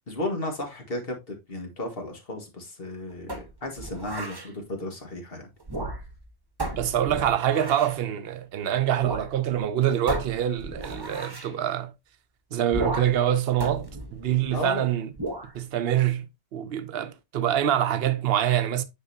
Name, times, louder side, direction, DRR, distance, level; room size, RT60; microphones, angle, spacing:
voice 1, 0.1-5.5 5.8-5.9 14.5-14.9, left 2 dB, 55° left, 1.9 m, -34 dB
sound 1, 3.3-4.5 5.6-6.2 6.6-8.0 9.0-9.3 9.6-9.7 10.1-11.5 12.7-13.2 13.6-14.7 15.2-15.5, right 2 dB, 20° right, 1.1 m, -34 dB
voice 2, 6.7-11.9 12.5-15.1 15.5-18.8, right 10 dB, 65° right, 0.9 m, -25 dB
9.4 x 3.9 x 2.7 m
omnidirectional pair, 1.2 m